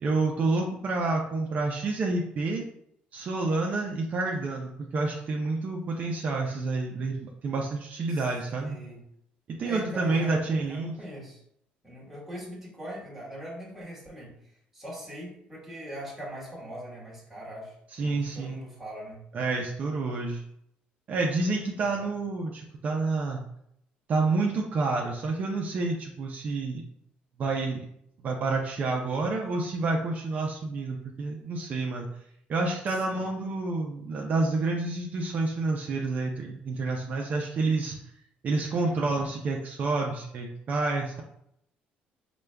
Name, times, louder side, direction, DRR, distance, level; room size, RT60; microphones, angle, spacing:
voice 1, 0.0-2.6 3.1-8.8 9.6-10.9 17.9-18.6 19.3-20.4 21.1-23.4 24.1-26.8 27.4-27.8 28.2-32.1 32.5-38.0 38.4-41.2, right 3 dB, 45° right, 0 dB, 0.5 m, -29 dB
voice 2, 8.6-9.0 9.6-11.4 11.8-19.3 21.8-22.1 33.1-33.3 38.8-39.2, equal, 5° right, -5 dB, 1.5 m, -42 dB
4.9 x 2.3 x 3.3 m, 0.74 s
cardioid pair, 115°, 4 cm